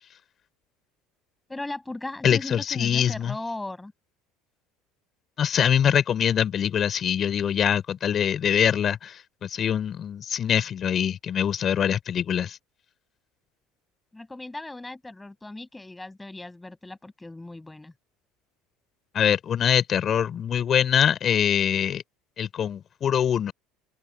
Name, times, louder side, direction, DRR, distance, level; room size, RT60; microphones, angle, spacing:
voice 1, 1.5-3.9 14.1-17.9, left 2 dB, 10° left, 7.5 m, -37 dB
voice 2, 2.2-3.3 5.4-12.6 19.1-22.0 22.4-23.5, left 9 dB, 45° left, 4.7 m, -24 dB
open air
hypercardioid pair, 75°, 0 cm